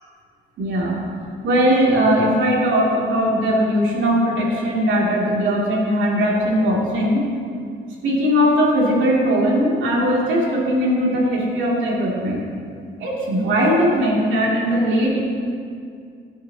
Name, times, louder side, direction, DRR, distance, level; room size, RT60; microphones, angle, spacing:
voice 1, 0.6-1.0 1.4-7.2 8.0-12.4 13.0-15.2, equal, 75° right, -4 dB, 2.9 m, -19 dB
16.5 x 9.4 x 3.0 m, 2.3 s
cardioid pair, 90°, 20 cm